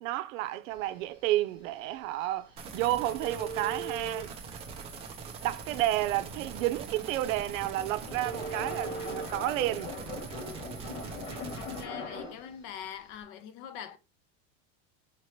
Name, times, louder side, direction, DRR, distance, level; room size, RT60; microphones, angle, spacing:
voice 1, 0.0-4.3 5.4-10.0, right 15 dB, 90° right, 0.6 m, -31 dB
Telephone, 0.7-13.2, right 4 dB, 30° left, 1.6 m, -45 dB
sound 1, 2.6-11.8, right 5 dB, 15° right, 0.3 m, -42 dB
sound 2, 7.8-12.5, left 4 dB, 85° left, 1.7 m, -41 dB
voice 2, 11.6-14.0, left 9 dB, 50° left, 0.6 m, -43 dB
4.4 x 2.9 x 3.0 m
supercardioid pair, 165°, 39 cm